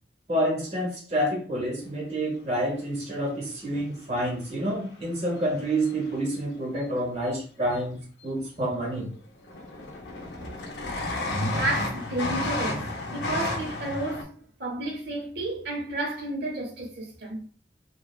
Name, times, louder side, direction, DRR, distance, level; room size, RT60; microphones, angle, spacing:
voice 1, 0.3-9.1, right 1 dB, 35° right, 1.0 m, -28 dB
sound 1, 3.7-3.8 5.4-6.1 8.4-8.5 8.7-9.1 9.4-14.2, left 2 dB, 80° left, 0.6 m, -31 dB
voice 2, 11.4-17.5, right 2 dB, 75° right, 0.8 m, -32 dB
3.3 x 2.3 x 2.3 m
head